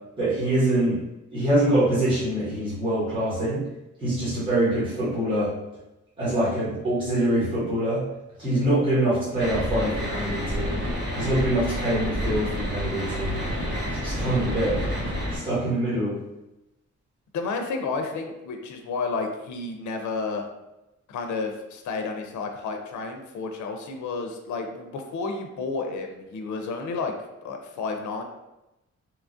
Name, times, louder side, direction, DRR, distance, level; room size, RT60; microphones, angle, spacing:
voice 1, 0.2-1.0 1.3-3.6 4.0-5.5 6.2-8.1 8.4-10.8 11.1-13.5 13.9-14.9 15.3-16.2, right 1 dB, 15° right, -11 dB, 1.0 m, -24 dB
sound 1, 9.4-15.4, equal, 40° right, 1.1 m, -29 dB
voice 2, 17.3-20.5 21.1-27.1 27.4-28.2, left 4 dB, 85° left, 4 dB, 0.5 m, -31 dB
2.9 x 2.3 x 2.5 m, 0.96 s
wide cardioid pair, 175°, 29 cm